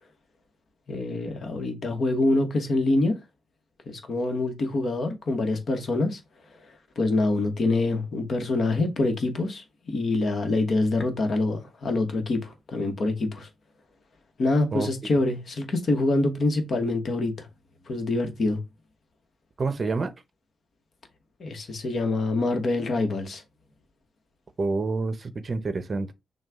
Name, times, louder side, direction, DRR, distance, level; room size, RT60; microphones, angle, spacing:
voice 1, 0.9-3.2 3.9-6.2 7.0-9.6 9.9-13.5 14.4-17.5 17.9-18.6 21.4-23.4, left 2 dB, 55° left, 1.2 m, -25 dB
voice 2, 19.6-20.1 24.6-26.1, right 3 dB, 40° right, 0.7 m, -28 dB
6.3 x 2.3 x 3.6 m
cardioid pair, 100°, 0 cm